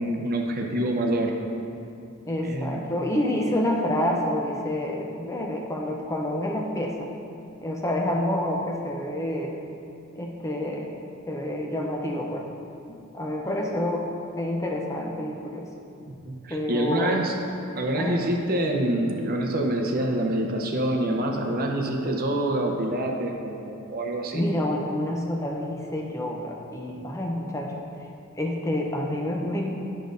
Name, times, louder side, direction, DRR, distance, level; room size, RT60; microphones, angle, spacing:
voice 1, 0.0-1.3 2.4-2.9 16.1-17.4 17.8-24.5, right 1 dB, 45° right, 1 dB, 0.7 m, -26 dB
voice 2, 2.3-7.1 7.6-9.6 10.2-10.9 11.3-12.4 12.9-14.1 14.4-15.7 16.5-17.2 17.9-18.2 24.3-27.8 28.4-29.7, left 1 dB, 15° left, 0 dB, 0.5 m, -28 dB
10.0 x 6.4 x 2.6 m, 2.7 s
head